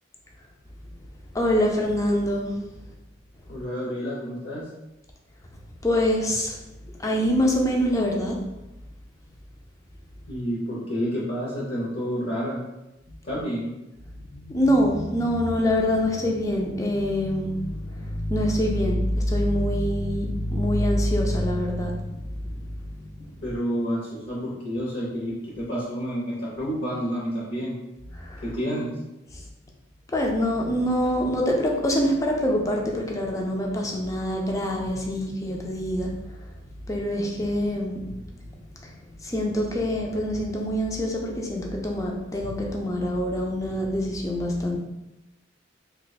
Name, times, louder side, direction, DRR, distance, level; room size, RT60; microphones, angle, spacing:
voice 1, 1.3-2.7 5.8-6.6 6.8-8.4 13.1-13.2 14.3-23.4 28.1-28.4 29.3-29.5 30.1-44.8, equal, 15° left, 0 dB, 0.4 m, -25 dB
voice 2, 3.5-4.7 10.3-12.6 13.2-13.7 23.4-27.8 28.4-29.0, equal, 50° left, -6 dB, 0.7 m, -29 dB
2.8 x 2.2 x 4.0 m, 0.96 s
head